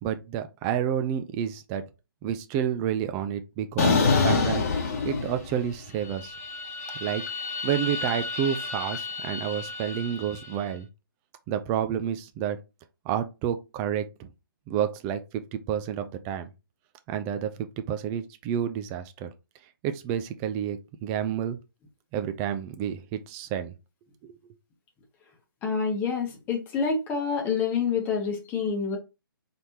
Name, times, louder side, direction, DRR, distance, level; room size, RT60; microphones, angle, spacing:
voice 1, 0.0-1.8 2.2-4.6 5.0-6.3 7.0-10.9 11.5-12.6 13.1-14.3 14.7-16.5 17.1-19.3 19.8-21.6 22.1-23.7 24.2-24.4, right 9 dB, 15° right, 0.3 m, -30 dB
sound 1, 3.8-5.7 6.1-10.4, left 4 dB, 40° left, 1.0 m, -28 dB
voice 2, 25.6-29.0, left 5 dB, 15° left, 0.9 m, -27 dB
4.1 x 3.4 x 2.8 m
figure-of-eight pair, 135°, 12 cm